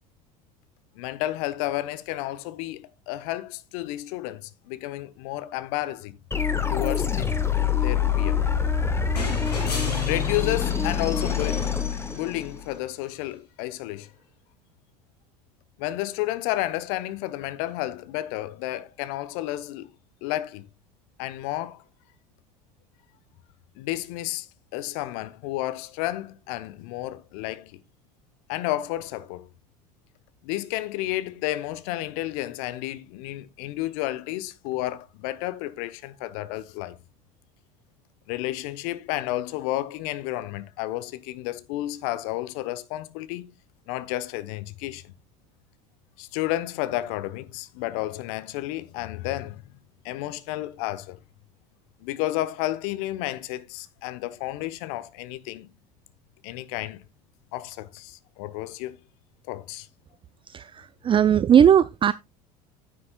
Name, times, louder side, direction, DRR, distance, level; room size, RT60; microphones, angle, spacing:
voice 1, 1.0-6.2 6.7-7.3 7.8-8.4 10.0-11.7 12.1-14.1 15.8-19.9 20.2-20.7 21.2-21.8 23.8-24.5 24.7-27.8 28.5-29.5 30.4-37.0 38.3-43.5 43.9-45.1 46.2-49.6 50.0-51.2 52.0-55.7 56.4-57.0 57.5-59.0 59.5-59.9, left 15 dB, 60° left, 1.1 m, -31 dB
sound 1, 6.3-12.8, left 7 dB, 10° left, 1.6 m, -25 dB
sound 2, 9.2-12.5 14.0-14.1, left 2 dB, 85° left, 6.2 m, -36 dB
voice 2, 60.5-62.1, right 9 dB, 25° right, 0.5 m, -18 dB
11.0 x 10.0 x 2.3 m
hypercardioid pair, 75°, 20 cm